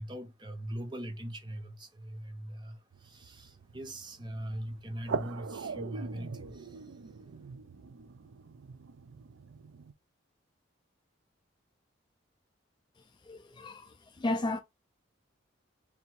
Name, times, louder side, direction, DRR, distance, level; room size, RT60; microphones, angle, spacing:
voice 1, 0.0-6.9, right 1 dB, 20° right, 0.6 m, -41 dB
sound 1, 2.9-9.9, right 5 dB, 75° right, 0.5 m, -42 dB
voice 2, 13.3-14.6, left 2 dB, 20° left, 0.3 m, -34 dB
3.5 x 2.6 x 4.5 m
head